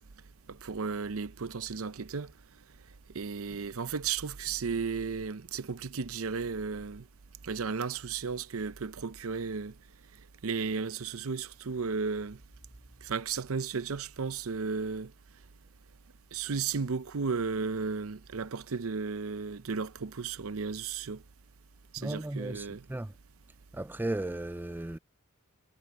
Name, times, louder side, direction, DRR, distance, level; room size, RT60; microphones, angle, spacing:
voice 1, 0.5-2.3 3.1-7.0 7.4-9.7 10.4-12.4 13.0-15.1 16.3-21.2 21.9-22.8, right 5 dB, 75° right, 0.7 m, -34 dB
voice 2, 22.0-23.1 23.7-25.0, right 1 dB, 10° right, 0.4 m, -35 dB
head